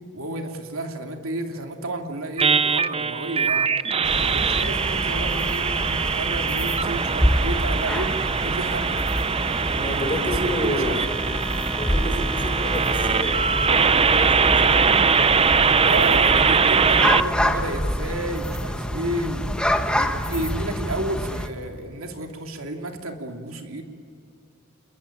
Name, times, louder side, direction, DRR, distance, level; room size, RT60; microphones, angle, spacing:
voice 1, 0.1-3.7 4.1-8.1 8.4-8.8 9.7-11.0 15.8-19.5 19.9-23.8, right 1 dB, 75° right, 4 dB, 2.7 m, -32 dB
sound 1, 2.4-17.2, right 5 dB, 25° right, 0.6 m, -22 dB
sound 2, 4.0-21.5, equal, 5° left, 1.5 m, -27 dB
voice 2, 9.7-11.0 11.8-15.1, left 1 dB, 25° left, 2 dB, 6.4 m, -30 dB
28.5 x 22.5 x 8.8 m, 2.3 s
head